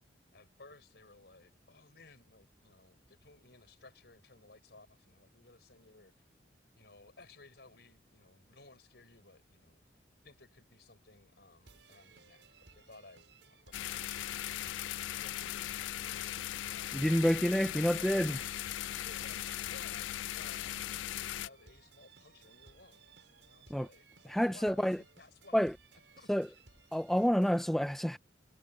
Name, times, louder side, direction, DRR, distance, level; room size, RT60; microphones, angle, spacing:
voice 1, 0.3-6.1 6.8-9.9 10.2-18.4 19.0-23.1 23.5-25.6 26.2-26.3, left 2 dB, 60° left, 5.7 m, -58 dB
sound 1, 11.6-27.6, right 5 dB, 80° right, 6.6 m, -61 dB
sound 2, 13.7-21.5, left 13 dB, 85° left, 0.3 m, -39 dB
voice 2, 16.9-18.4 23.7-23.9 24.3-25.0 25.5-25.7 26.3-26.5 26.9-28.2, equal, ahead, 0.4 m, -28 dB
head